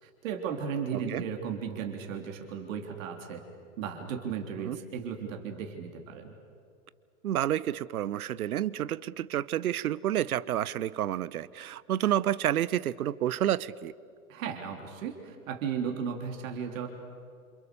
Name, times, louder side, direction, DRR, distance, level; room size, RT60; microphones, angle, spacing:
voice 1, 0.0-3.4 3.8-6.3 14.3-16.9, right 7 dB, 60° right, 3 dB, 3.5 m, -35 dB
voice 2, 0.9-1.2 4.6-4.8 7.2-13.9, right 11 dB, 75° right, 20 dB, 0.9 m, -29 dB
28.0 x 28.0 x 6.9 m, 2.4 s
hypercardioid pair, 110°, 43 cm